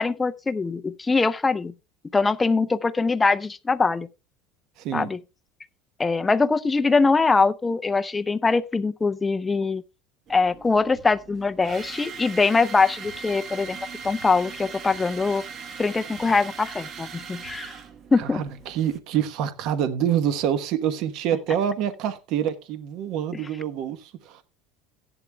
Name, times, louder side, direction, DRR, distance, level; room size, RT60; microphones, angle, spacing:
voice 1, 0.0-1.7 2.1-4.1 4.9-5.2 6.0-9.8 10.3-13.8 14.0-15.4 15.8-17.7 18.1-18.4, left 4 dB, 15° left, 0.5 m, -22 dB
voice 2, 4.8-5.1 18.2-24.4, right 9 dB, 55° right, 1.1 m, -26 dB
sound 1, 10.3-19.0, right 5 dB, 35° right, 1.2 m, -40 dB
16.0 x 11.0 x 2.2 m
cardioid pair, 155°, 0 cm